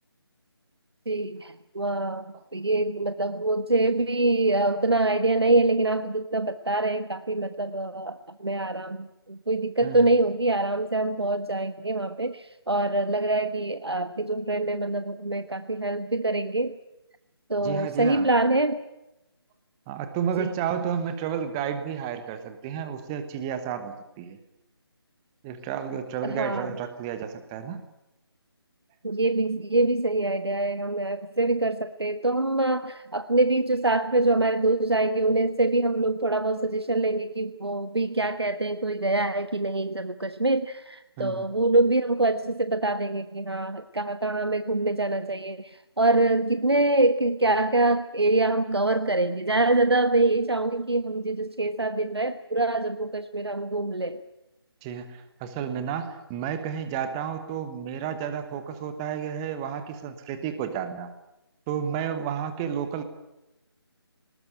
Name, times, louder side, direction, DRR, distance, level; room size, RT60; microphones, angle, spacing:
voice 1, 1.1-16.8 17.5-18.8 20.4-20.5 26.2-26.7 29.0-54.2, right 2 dB, 75° right, 10 dB, 1.2 m, -25 dB
voice 2, 17.6-18.3 19.9-24.4 25.4-27.8 41.2-41.5 54.8-61.1 61.7-63.0, right 8 dB, 10° right, 10 dB, 1.1 m, -31 dB
19.5 x 19.5 x 9.1 m, 0.92 s
figure-of-eight pair, 155°, 13 cm